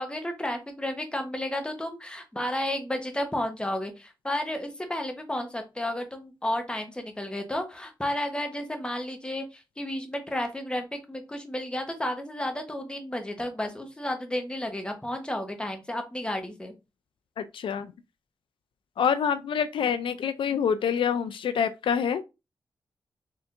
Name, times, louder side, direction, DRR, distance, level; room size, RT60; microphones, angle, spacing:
voice 1, 0.0-16.7, left 1 dB, 10° left, 0.9 m, -32 dB
voice 2, 17.4-17.9 19.0-22.2, left 7 dB, 80° left, 0.4 m, -26 dB
4.3 x 3.4 x 2.5 m
wide cardioid pair, 95°, 9 cm